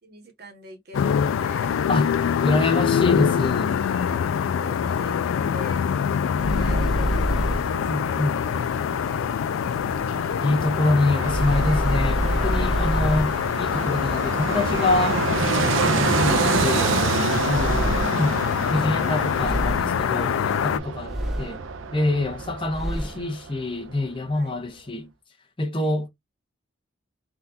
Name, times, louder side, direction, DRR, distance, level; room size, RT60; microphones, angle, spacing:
voice 1, 0.0-1.8 3.6-4.2 4.6-5.2 5.5-5.8 6.1-9.2 20.5-21.8 24.3-24.9 25.7-25.9, right 1 dB, 50° right, 1.0 m, -45 dB
sound 1, 0.9-20.8, left 8 dB, 90° left, 0.3 m, -25 dB
voice 2, 1.9-3.8 7.9-8.4 10.4-17.0 17.4-18.3 18.7-21.6 21.9-25.1 25.6-26.1, left 2 dB, 25° left, 0.7 m, -26 dB
sound 2, 6.4-7.9 11.2-13.5 17.5-18.4 19.4-20.1 21.1-21.7 22.7-23.2, equal, ahead, 0.3 m, -27 dB
Fixed-wing aircraft airplane, 6.7-23.6 23.9-24.0, right 5 dB, 80° right, 0.4 m, -29 dB
3.6 x 2.3 x 2.6 m
head